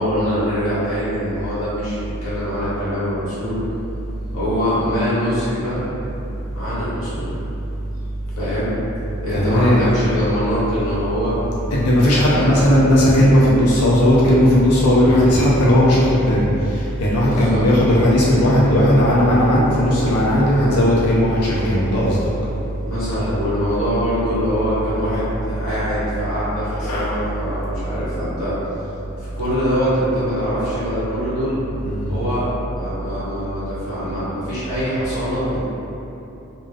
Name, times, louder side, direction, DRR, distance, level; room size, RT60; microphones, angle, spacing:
voice 1, 0.0-3.6 4.3-5.8 6.5-7.3 8.4-8.7 9.2-11.4 12.3-12.7 17.2-17.6 20.4-20.7 22.8-28.5 29.2-31.6 32.1-35.6, equal, 60° left, -12 dB, 0.9 m, -23 dB
voice 2, 9.3-9.8 11.7-22.3 26.8-27.1 31.8-32.2, equal, 85° left, -7 dB, 0.5 m, -16 dB
2.3 x 2.3 x 3.2 m, 2.9 s
head